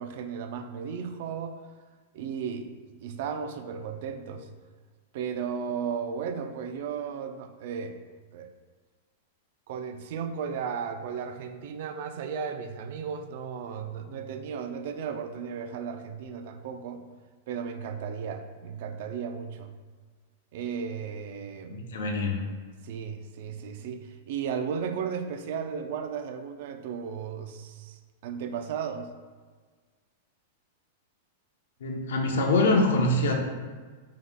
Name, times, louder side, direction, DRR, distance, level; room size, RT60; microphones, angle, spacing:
voice 1, 0.0-1.6 2.1-4.5 5.1-8.0 8.3-8.5 9.7-17.0 17.5-19.8 20.5-21.8 22.8-29.1, right 6 dB, 55° right, 7 dB, 0.3 m, -35 dB
voice 2, 21.7-22.4 31.8-33.4, left 2 dB, 80° left, 2 dB, 0.6 m, -24 dB
5.0 x 2.9 x 2.2 m, 1.5 s
supercardioid pair, 150°, 0 cm